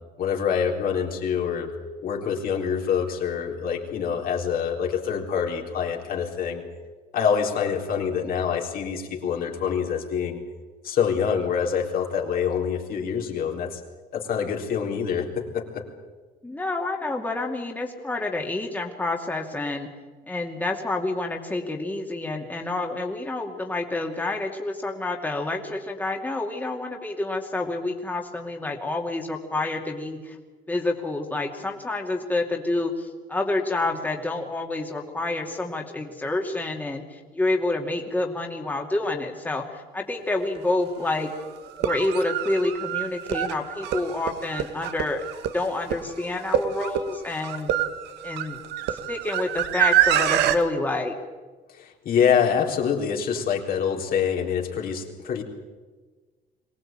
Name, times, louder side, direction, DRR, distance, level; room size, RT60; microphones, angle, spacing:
voice 1, 0.2-1.7 2.0-6.6 7.1-10.4 10.8-13.8 14.1-15.8 51.7-55.4, left 7 dB, 60° left, 1 dB, 3.9 m, -26 dB
voice 2, 16.4-19.9 20.3-30.4 30.7-41.3 41.8-47.7 48.2-48.6 48.9-51.1, left 2 dB, 10° left, 1 dB, 2.6 m, -28 dB
sound 1, 40.5-40.6 41.7-50.6, right 11 dB, 85° right, 1.6 m, -26 dB
23.0 x 18.0 x 8.9 m, 1.3 s
cardioid pair, 110°, 17 cm